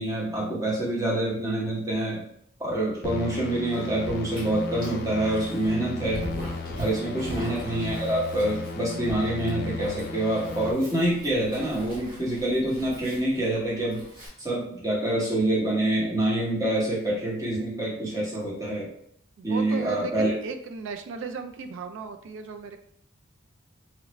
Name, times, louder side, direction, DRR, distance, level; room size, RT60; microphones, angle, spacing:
voice 1, 0.0-2.2 2.6-6.2 6.8-14.0 14.4-18.9 19.4-20.3, right 1 dB, 15° right, -6 dB, 0.9 m, -26 dB
sound 1, 3.0-10.7, left 3 dB, 50° left, 0.3 m, -35 dB
Dog, 3.7-14.3, right 1 dB, 45° right, 1.3 m, -41 dB
voice 2, 19.4-22.8, right 5 dB, 70° right, 7 dB, 0.3 m, -36 dB
3.0 x 2.5 x 3.0 m, 0.67 s
head